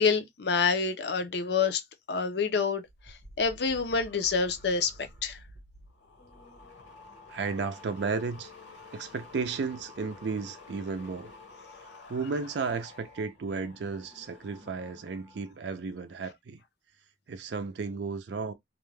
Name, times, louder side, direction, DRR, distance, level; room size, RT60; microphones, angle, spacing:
voice 1, 0.0-1.8 2.1-2.8 3.4-4.9 5.2-5.4, left 5 dB, 60° left, 0.5 m, -27 dB
sound 1, 2.8-15.5 15.8-16.2, left 2 dB, 80° left, 1.3 m, -51 dB
voice 2, 7.3-8.5 8.9-11.3 12.1-16.6 17.3-18.5, right 4 dB, 70° right, 0.4 m, -33 dB
2.4 x 2.2 x 3.2 m
head